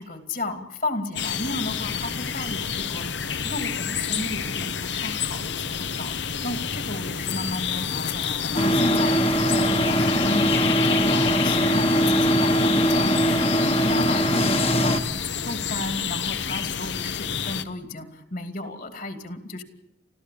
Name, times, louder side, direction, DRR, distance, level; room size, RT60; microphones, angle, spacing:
voice 1, 0.0-19.6, left 2 dB, 50° left, 8 dB, 2.7 m, -34 dB
sound 1, 1.2-17.6, left 7 dB, 70° left, 1.1 m, -29 dB
sound 2, 8.6-15.0, equal, 30° left, 1.5 m, -21 dB
30.0 x 13.5 x 8.5 m, 0.90 s
head